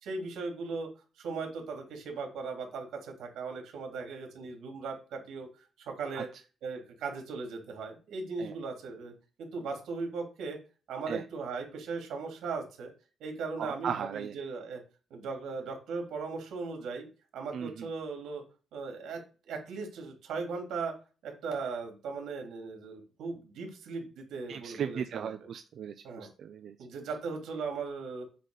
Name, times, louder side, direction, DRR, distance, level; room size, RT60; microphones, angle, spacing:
voice 1, 0.0-0.9 1.2-5.5 5.8-6.3 6.6-9.1 9.4-10.6 10.9-12.9 13.2-14.8 15.1-17.1 17.3-18.4 18.7-19.2 19.5-20.9 21.2-25.5 26.0-26.3 26.8-28.2, right 4 dB, 85° right, 3 dB, 3.4 m, -38 dB
voice 2, 13.6-14.3 17.5-17.7 24.5-26.7, right 8 dB, 55° right, 8 dB, 0.6 m, -36 dB
9.2 x 4.3 x 6.6 m, 0.35 s
cardioid pair, 170°, 0 cm